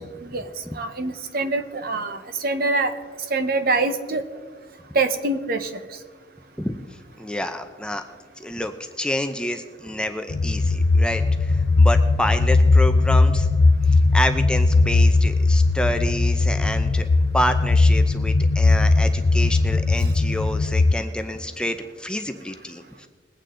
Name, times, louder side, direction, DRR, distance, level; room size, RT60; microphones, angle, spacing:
voice 1, 0.7-2.9 3.3-4.2 4.9-5.8, right 3 dB, 50° right, 9 dB, 0.9 m, -24 dB
voice 2, 7.2-8.0 8.4-13.5 13.9-17.1 17.3-23.1, left 1 dB, 5° left, 7 dB, 0.5 m, -28 dB
sound 1, 10.3-20.9, left 3 dB, 60° left, 0.5 m, -18 dB
21.5 x 8.9 x 3.8 m, 1.5 s
head